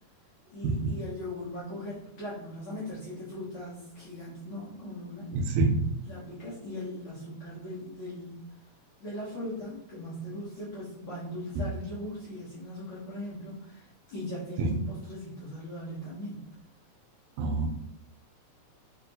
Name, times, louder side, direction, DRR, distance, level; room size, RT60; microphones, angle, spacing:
voice 1, 0.5-5.3 6.0-8.4 9.0-16.4, left 1 dB, 55° left, -9 dB, 1.5 m, -39 dB
voice 2, 5.3-5.9 14.6-14.8 17.4-17.7, right 3 dB, 85° right, 4 dB, 2.0 m, -26 dB
4.7 x 2.9 x 2.6 m, 0.78 s
omnidirectional pair, 3.3 m